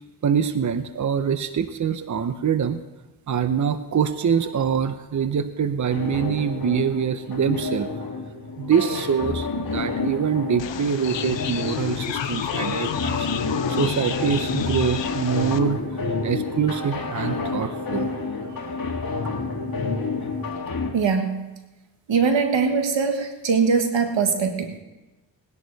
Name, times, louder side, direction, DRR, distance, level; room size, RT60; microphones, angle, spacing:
voice 1, 0.2-2.8 3.3-7.9 8.6-13.3 13.7-18.1 18.6-18.7, right 7 dB, 40° right, 10 dB, 0.8 m, -24 dB
sound 1, 5.9-20.9, left 3 dB, 50° left, 2.0 m, -29 dB
sound 2, 10.6-15.6, left 8 dB, 80° left, 0.9 m, -30 dB
voice 2, 20.9-21.5 22.1-24.8, right 5 dB, 90° right, 5 dB, 1.7 m, -22 dB
19.0 x 10.5 x 4.1 m, 1.1 s
cardioid pair, 70°, 43 cm